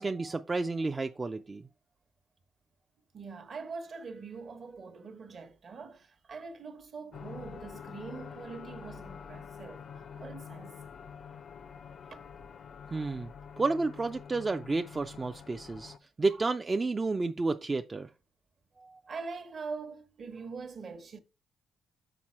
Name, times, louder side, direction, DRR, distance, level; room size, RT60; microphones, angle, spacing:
voice 1, 0.0-1.6 12.9-13.3 13.6-18.1 18.8-19.0, right 3 dB, 25° right, 0.3 m, -31 dB
voice 2, 3.1-10.8 12.0-12.2 12.9-13.2 15.8-16.0 16.3-16.4 19.1-21.2, right 4 dB, 50° right, 0.9 m, -43 dB
sound 1, 7.1-16.0, left 7 dB, 55° left, 0.4 m, -47 dB
6.0 x 4.2 x 4.3 m
cardioid pair, 90°, 0 cm